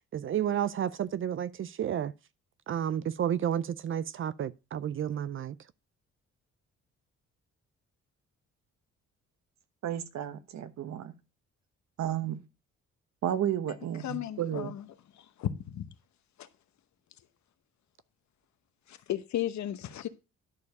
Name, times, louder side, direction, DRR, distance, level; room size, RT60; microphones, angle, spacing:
voice 1, 0.1-2.1 2.7-5.6, right 9 dB, 45° right, 0.4 m, -31 dB
voice 2, 9.8-11.1 12.0-12.4 13.2-14.7, right 10 dB, 65° right, 1.0 m, -32 dB
voice 3, 14.0-14.9 15.2-15.9 16.4-16.5 18.9-20.1, left 11 dB, 70° left, 0.9 m, -35 dB
11.0 x 4.7 x 5.2 m
cardioid pair, 90°, 30 cm